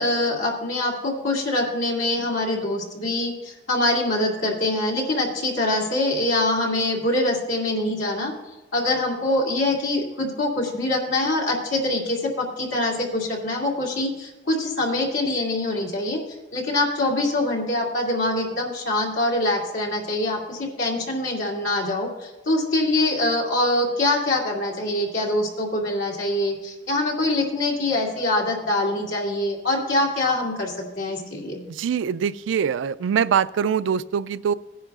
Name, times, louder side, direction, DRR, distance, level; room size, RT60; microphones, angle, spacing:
voice 1, 0.0-8.3 8.7-16.2 16.5-31.6, left 2 dB, 85° left, -2 dB, 2.5 m, -24 dB
voice 2, 31.7-34.5, right 7 dB, 85° right, 17 dB, 0.3 m, -23 dB
17.5 x 10.0 x 2.4 m, 1.1 s
head